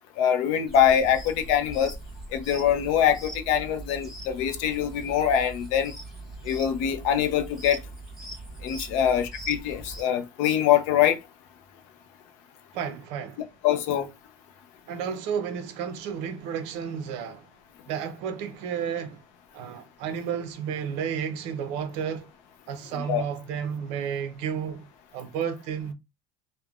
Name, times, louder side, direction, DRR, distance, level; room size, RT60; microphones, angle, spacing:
voice 1, 0.2-1.9 2.3-5.9 6.5-7.8 8.6-11.2 13.6-14.1 23.1-23.2, left 9 dB, 60° left, 0.5 m, -23 dB
sound 1, 0.7-10.0, right 2 dB, ahead, 1.0 m, -41 dB
voice 2, 12.7-13.5 14.9-17.5 17.9-19.2 19.5-22.3 22.7-24.9 25.1-25.9, right 7 dB, 60° right, 0.6 m, -32 dB
3.4 x 2.1 x 2.3 m
cardioid pair, 175°, 13 cm